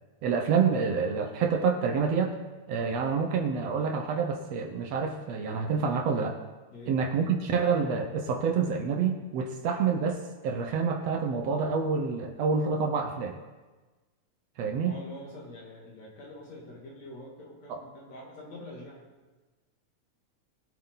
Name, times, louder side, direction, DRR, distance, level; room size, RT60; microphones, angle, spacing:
voice 1, 0.2-2.4 2.7-6.4 6.9-13.3 14.6-14.9, right 5 dB, 70° right, 4 dB, 1.9 m, -27 dB
voice 2, 14.8-19.0, left 1 dB, 60° left, -3 dB, 3.7 m, -45 dB
21.5 x 8.2 x 3.9 m, 1.3 s
omnidirectional pair, 3.4 m